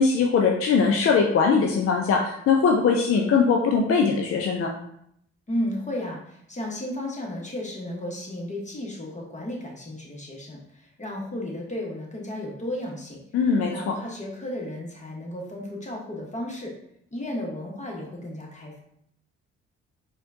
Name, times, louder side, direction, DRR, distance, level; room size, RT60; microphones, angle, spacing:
voice 1, 0.0-4.7 13.3-13.9, left 5 dB, 45° left, 1 dB, 0.5 m, -21 dB
voice 2, 5.5-13.2 13.7-16.7 17.1-18.8, left 1 dB, 20° left, -1 dB, 1.1 m, -33 dB
4.2 x 2.3 x 2.6 m, 0.73 s
hypercardioid pair, 40°, 33 cm